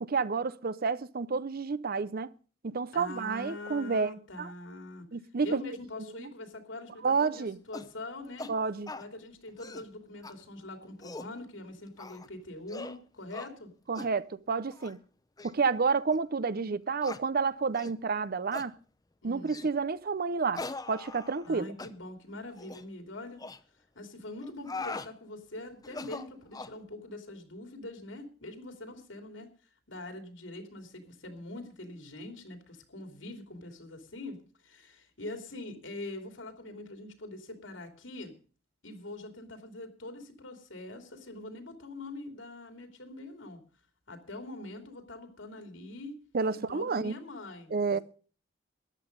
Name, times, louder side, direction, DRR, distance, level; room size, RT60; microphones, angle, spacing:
voice 1, 0.0-2.3 2.6-4.1 4.4-4.5 5.1-5.6 6.2-6.3 7.0-7.6 8.5-8.9 13.9-15.0 15.4-18.7 19.2-20.6 20.9-21.7 46.3-47.2 47.7-48.0, right 4 dB, 55° right, 0.6 m, -30 dB
voice 2, 2.9-5.1 5.4-8.5 8.9-13.7 19.2-19.5 21.4-23.4 23.9-29.5 29.9-38.4 38.8-43.6 44.1-46.2 46.5-48.0, left 2 dB, 90° left, 3.1 m, -43 dB
sound 1, 7.7-7.9 8.4-8.5 8.9-9.1 9.5-9.9 10.2-10.3 10.8-11.3 12.0-12.3 12.7-13.0 13.3-13.5 13.9-14.1 14.7-14.9 15.4-15.5 16.1-16.2 17.0-17.2 17.7-18.0 18.5-18.7 19.5-19.7 20.5-21.5 21.8-21.9 22.6-22.8 23.4-23.6 24.4-25.1 25.8-26.8, left 3 dB, 20° left, 0.7 m, -41 dB
14.0 x 10.5 x 5.3 m
head